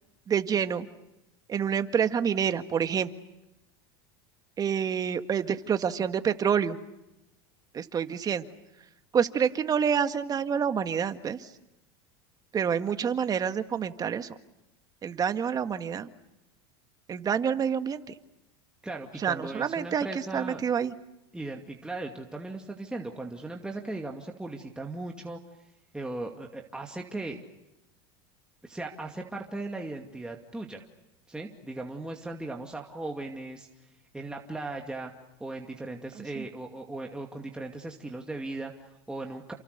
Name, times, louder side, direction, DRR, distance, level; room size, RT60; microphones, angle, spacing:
voice 1, 0.3-0.9 1.5-3.1 4.6-6.8 7.7-8.5 9.1-11.5 12.5-14.3 15.0-16.1 17.1-18.1 19.2-20.1 20.3-20.9 36.2-36.5, right 7 dB, 30° right, 9 dB, 1.8 m, -27 dB
voice 2, 18.8-20.6 21.3-25.4 25.9-27.4 28.6-30.8 31.3-33.7 34.1-35.1 35.4-39.5, right 2 dB, 5° right, 2 dB, 2.4 m, -38 dB
29.5 x 27.5 x 6.8 m, 0.91 s
supercardioid pair, 110°, 13 cm